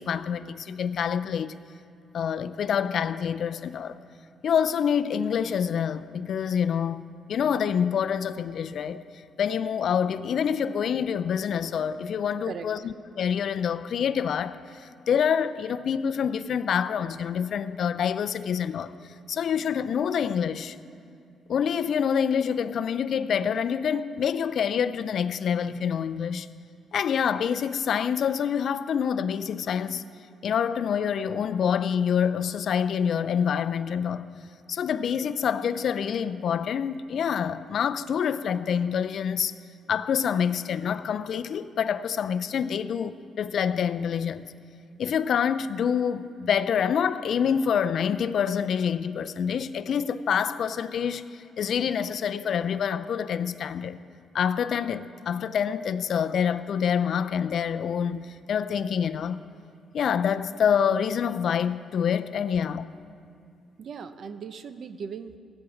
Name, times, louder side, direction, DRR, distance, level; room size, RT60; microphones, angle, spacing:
voice 1, 0.0-1.5 2.1-4.0 4.4-7.0 7.3-9.0 9.4-18.9 19.3-20.8 21.5-26.5 26.9-30.0 30.4-34.3 34.7-39.5 39.9-44.5 45.0-54.0 54.3-59.4 59.9-62.9, left 7 dB, 60° left, 0.5 m, -26 dB
voice 2, 63.8-65.4, right 6 dB, 60° right, 0.7 m, -38 dB
15.5 x 9.1 x 7.1 m
cardioid pair, 90°, 0 cm